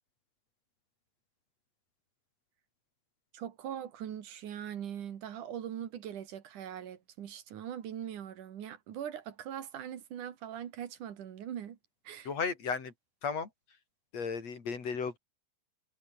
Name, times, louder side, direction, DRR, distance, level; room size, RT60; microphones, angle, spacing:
voice 1, 3.3-11.8 12.1-12.3, right 9 dB, 85° right, 3.5 m, -41 dB
voice 2, 12.2-12.9 13.2-13.5 14.1-15.2, left 5 dB, 60° left, 4.6 m, -34 dB
omnidirectional pair, 3.5 m